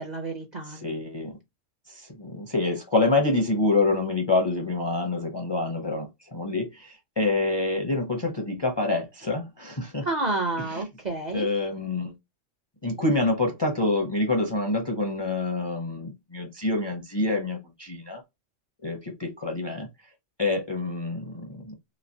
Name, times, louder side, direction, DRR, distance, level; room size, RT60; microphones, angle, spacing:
voice 1, 0.0-0.9 10.0-11.5, right 2 dB, 45° right, 0.6 m, -30 dB
voice 2, 0.8-1.3 1.9-10.1 11.3-12.1 12.8-18.2 18.8-19.9 20.4-21.7, left 2 dB, 30° left, 0.6 m, -27 dB
3.1 x 2.7 x 2.7 m
omnidirectional pair, 1.3 m